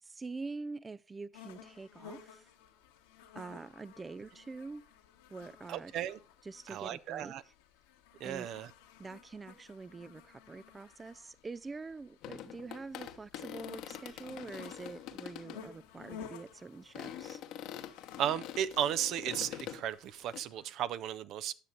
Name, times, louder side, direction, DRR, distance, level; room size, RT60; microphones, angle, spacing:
voice 1, 0.0-2.5 3.3-4.8 5.3-5.9 6.4-7.5 8.2-8.5 9.0-17.4, right 3 dB, 20° right, 0.4 m, -45 dB
sound 1, 1.3-20.7, left 8 dB, 85° left, 1.6 m, -55 dB
voice 2, 5.7-6.2 6.7-7.4 8.2-8.7 18.2-21.5, right 10 dB, 60° right, 0.6 m, -35 dB
sound 2, 12.2-15.6 16.1-16.3 16.9-19.8 20.3-20.4, left 11 dB, 65° left, 1.1 m, -45 dB
10.0 x 6.4 x 5.3 m
hypercardioid pair, 75°, 0 cm